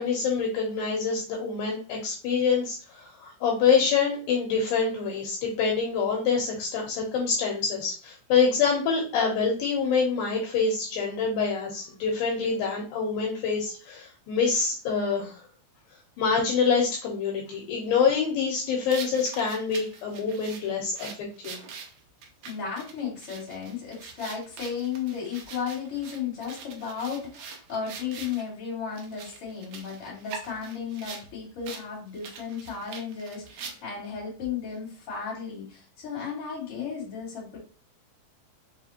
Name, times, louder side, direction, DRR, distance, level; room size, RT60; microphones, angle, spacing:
voice 1, 0.0-15.4 16.2-21.1 21.4-21.6, left 5 dB, 80° left, 0 dB, 2.6 m, -26 dB
sound 1, 18.9-28.4 28.9-31.3 31.6-31.8 32.1-34.1, right 6 dB, 85° right, 1.6 m, -43 dB
voice 2, 22.4-37.6, left 6 dB, 40° left, -4 dB, 3.1 m, -34 dB
5.6 x 3.3 x 2.8 m, 0.37 s
omnidirectional pair, 4.3 m